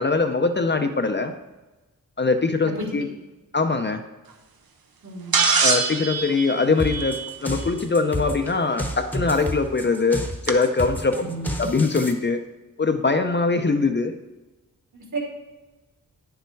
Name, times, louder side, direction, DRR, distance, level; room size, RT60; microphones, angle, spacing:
voice 1, 0.0-1.3 2.2-3.0 3.5-4.0 5.6-11.2 11.6-12.4 12.8-14.1, left 4 dB, 30° left, 6 dB, 0.6 m, -22 dB
voice 2, 5.0-5.4 11.1-11.5 14.9-15.2, right 3 dB, 55° right, -1 dB, 3.0 m, -32 dB
sound 1, 5.3-7.6 9.2-9.3 10.5-10.6, right 5 dB, 80° right, 1.0 m, -23 dB
sound 2, 6.8-12.1, equal, 5° left, 1.0 m, -30 dB
9.9 x 6.9 x 4.6 m, 1.1 s
wide cardioid pair, 130°, 35 cm